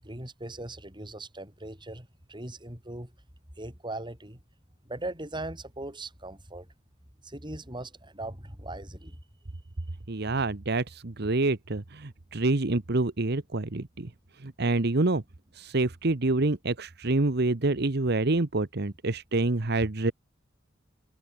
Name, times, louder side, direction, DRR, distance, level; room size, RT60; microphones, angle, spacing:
voice 1, 0.0-3.1 3.6-4.4 4.8-6.7 7.2-9.2, right 2 dB, 25° right, 7.8 m, -39 dB
voice 2, 10.1-14.1 14.4-15.2 15.5-20.1, right 2 dB, 60° right, 1.1 m, -27 dB
head